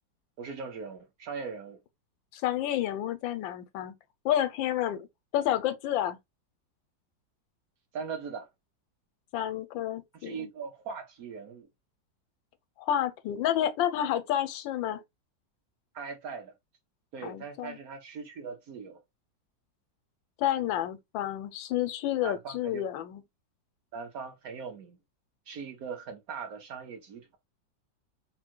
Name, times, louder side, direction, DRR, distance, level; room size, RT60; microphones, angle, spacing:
voice 1, 0.4-1.8 7.9-8.5 10.1-11.7 15.9-16.5 17.1-19.0 22.2-22.8 23.9-25.0 25.5-27.4, right 5 dB, 60° right, 1.1 m, -40 dB
voice 2, 2.3-3.9 4.2-5.1 5.3-6.2 9.3-10.5 12.8-15.0 17.2-17.8 20.4-23.2, left 11 dB, 85° left, 1.3 m, -30 dB
3.7 x 2.2 x 4.4 m
omnidirectional pair, 2.1 m